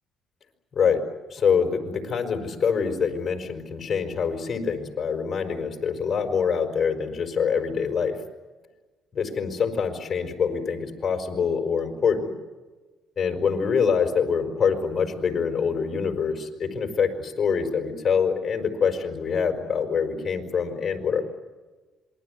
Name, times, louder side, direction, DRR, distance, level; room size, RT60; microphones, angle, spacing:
voice 1, 1.3-8.2 9.1-12.3 13.2-21.2, left 6 dB, 45° left, 5 dB, 5.3 m, -25 dB
27.0 x 22.0 x 9.5 m, 1.2 s
cardioid pair, 90°, 0 cm